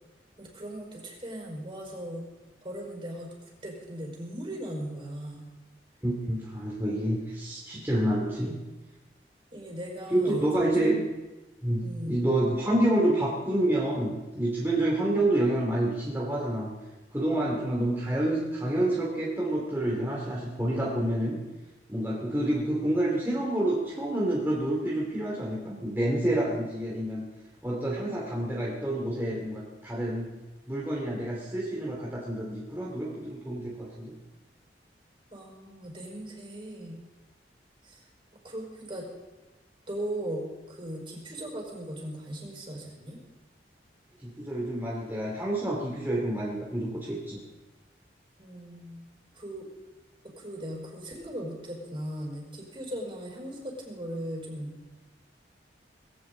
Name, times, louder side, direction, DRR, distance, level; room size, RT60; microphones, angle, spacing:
voice 1, 0.4-2.3 2.6-3.3 3.6-5.5 9.5-10.9 11.8-12.2 35.3-37.0 37.8-38.1 38.4-39.1 39.9-43.2 48.4-49.0 49.3-49.7 50.2-54.7, right 1 dB, 30° right, -1 dB, 4.8 m, -38 dB
voice 2, 6.0-8.6 10.1-11.0 11.6-16.7 17.1-21.4 21.9-27.2 27.6-30.3 30.7-34.2 44.2-47.4, right 1 dB, 15° right, -4 dB, 2.6 m, -28 dB
20.5 x 16.0 x 3.9 m, 1.1 s
head